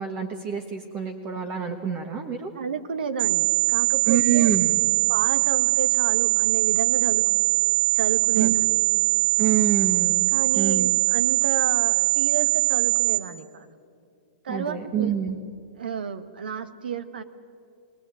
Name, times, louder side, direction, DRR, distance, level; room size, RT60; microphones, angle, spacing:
voice 1, 0.0-2.5 4.1-4.8 8.3-8.5 9.4-11.0 14.5-15.4, right 9 dB, 30° right, 4 dB, 1.5 m, -26 dB
voice 2, 2.5-4.5 5.1-7.2 7.9-8.8 10.3-13.7 14.4-15.3 15.8-17.2, right 6 dB, 85° right, 11 dB, 1.5 m, -32 dB
sound 1, 3.2-13.2, right 26 dB, 50° right, 1.9 m, -22 dB
22.5 x 18.5 x 9.0 m, 2.4 s
hypercardioid pair, 140°, 5 cm